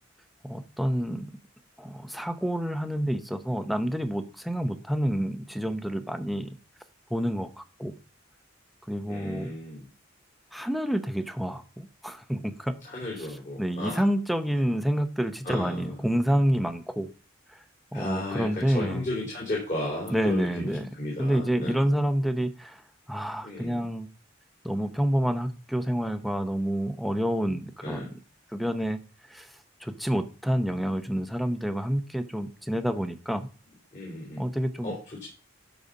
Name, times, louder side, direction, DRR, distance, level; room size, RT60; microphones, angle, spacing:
voice 1, 0.4-1.3 1.8-6.6 7.1-7.9 8.9-9.5 10.5-12.8 13.2-13.3 13.6-17.1 17.9-19.0 20.1-20.9 21.2-22.8 23.1-24.1 24.6-28.2 28.5-29.0 29.3-29.5 29.8-33.5 34.4-34.9, equal, ahead, 9 dB, 0.7 m, -28 dB
voice 2, 9.1-9.9 12.8-14.0 15.4-16.0 17.9-21.8 23.4-23.9 27.8-28.1 33.9-34.5 34.8-35.2, left 1 dB, 40° left, -4 dB, 3.4 m, -34 dB
12.5 x 4.1 x 5.1 m, 0.36 s
head